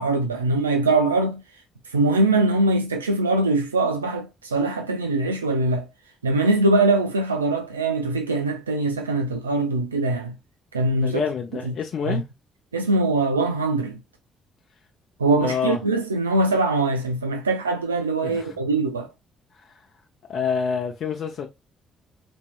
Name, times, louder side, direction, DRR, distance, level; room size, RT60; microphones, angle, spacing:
voice 1, 0.0-1.4 1.9-5.9 6.2-10.4 10.7-11.2 11.7-11.8 12.1-12.2 12.7-14.0 15.2-19.1, right 2 dB, 85° right, 0.3 m, -22 dB
voice 2, 11.0-12.2 15.4-15.8 18.2-18.7 19.5-19.7 20.3-21.5, left 6 dB, 55° left, 0.7 m, -27 dB
4.2 x 2.6 x 2.3 m
figure-of-eight pair, 45°, 0 cm